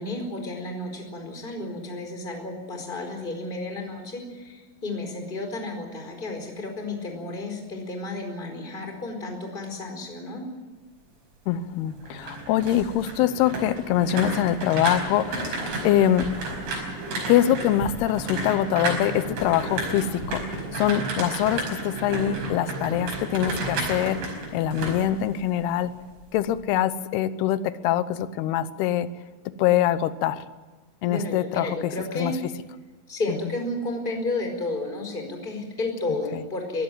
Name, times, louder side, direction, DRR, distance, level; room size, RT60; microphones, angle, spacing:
voice 1, 0.0-10.4 31.1-32.4 33.1-36.8, left 2 dB, 10° left, 3 dB, 4.1 m, -32 dB
voice 2, 11.5-16.3 17.1-25.9 26.3-29.1 29.6-30.4 31.0-32.3 36.3-36.4, left 11 dB, 80° left, 13 dB, 2.3 m, -24 dB
sound 1, 11.9-25.9 26.2-26.6, right 2 dB, 65° right, 7.4 m, -32 dB
22.5 x 16.0 x 9.0 m, 1.2 s
omnidirectional pair, 5.7 m